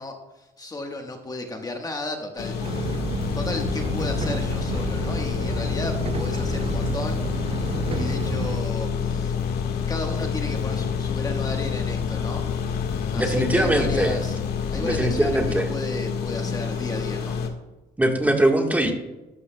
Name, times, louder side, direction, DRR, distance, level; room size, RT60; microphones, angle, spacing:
voice 1, 0.0-2.9 3.3-7.2 7.9-9.4 9.9-12.4 13.1-14.4 14.7-17.4, left 2 dB, 20° left, 3 dB, 1.3 m, -34 dB
sound 1, 2.4-17.5, left 5 dB, 70° left, 1.6 m, -29 dB
sound 2, 2.6-8.6, right 6 dB, 35° right, 0.7 m, -31 dB
sound 3, 3.2-15.6, left 10 dB, 55° left, 0.4 m, -32 dB
voice 2, 13.1-14.2 14.7-15.7 18.0-18.9, right 1 dB, 10° right, 3 dB, 1.4 m, -21 dB
13.0 x 12.0 x 2.2 m, 1.1 s
cardioid pair, 110°, 17 cm